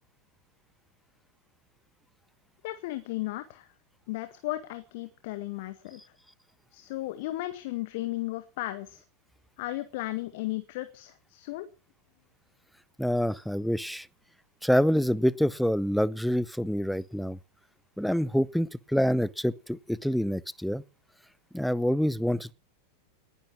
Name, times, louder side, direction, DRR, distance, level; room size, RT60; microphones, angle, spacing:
voice 1, 2.6-3.7 4.1-6.0 6.7-9.0 9.6-11.7, left 17 dB, 50° left, 1.7 m, -35 dB
voice 2, 13.0-14.1 14.6-17.4 18.0-20.8 21.5-22.5, equal, ahead, 0.7 m, -26 dB
19.5 x 11.5 x 6.1 m
figure-of-eight pair, 90°, 0 cm